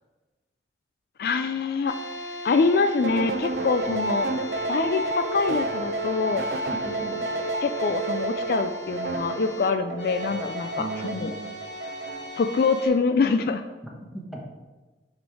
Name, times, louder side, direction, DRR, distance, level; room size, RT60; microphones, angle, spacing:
voice 1, 1.2-1.9 2.4-4.3 4.7-6.4 7.6-11.3 12.4-13.6, left 4 dB, 55° left, 8 dB, 0.3 m, -25 dB
sound 1, 1.9-12.9, left 1 dB, 85° left, 1.0 m, -39 dB
sound 2, 3.0-12.4, right 2 dB, 55° right, 0.5 m, -30 dB
voice 2, 3.9-4.3 6.7-7.3 10.8-11.5 13.8-14.4, right 2 dB, ahead, -2 dB, 1.0 m, -37 dB
9.1 x 3.2 x 4.7 m, 1.2 s
head